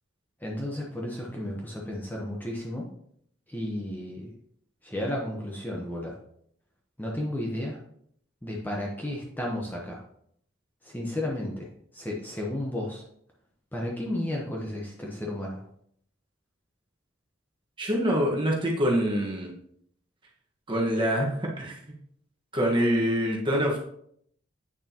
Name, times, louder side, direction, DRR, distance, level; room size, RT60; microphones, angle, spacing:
voice 1, 0.4-2.9 3.5-4.3 4.8-6.2 7.0-7.8 8.4-10.0 10.8-11.7 11.9-13.0 13.7-15.6, left 1 dB, 10° left, -2 dB, 1.0 m, -33 dB
voice 2, 17.8-19.5 20.7-21.8 22.5-23.8, equal, 25° right, -1 dB, 1.4 m, -25 dB
8.6 x 6.5 x 2.9 m, 0.68 s
head